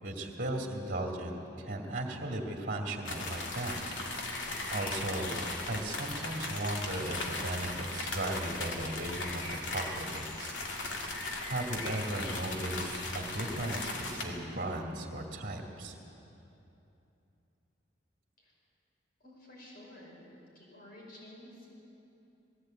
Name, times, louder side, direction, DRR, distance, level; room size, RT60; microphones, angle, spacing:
voice 1, 0.0-10.6 11.5-16.0, right 1 dB, 50° right, 2 dB, 2.2 m, -37 dB
sound 1, 3.1-14.2, left 2 dB, 85° left, 2.5 m, -37 dB
voice 2, 19.2-20.2 20.5-21.7, left 1 dB, 50° left, -3 dB, 5.8 m, -52 dB
20.0 x 15.5 x 8.8 m, 2.9 s
head